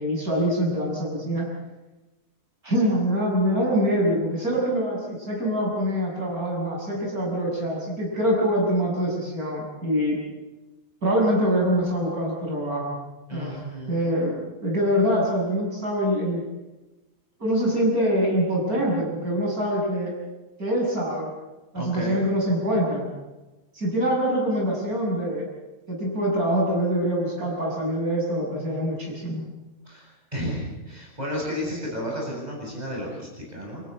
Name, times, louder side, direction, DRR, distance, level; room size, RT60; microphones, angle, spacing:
voice 1, 0.0-1.5 2.6-10.2 11.0-13.0 13.3-13.6 13.9-16.4 17.4-20.1 20.6-21.3 21.7-23.1 23.7-25.5 25.9-29.4, equal, 65° right, -3 dB, 7.2 m, -24 dB
voice 2, 13.3-14.0 21.7-22.2 29.9-33.8, equal, 25° right, -3 dB, 7.9 m, -32 dB
29.5 x 14.0 x 9.8 m, 1.1 s
omnidirectional pair, 1.7 m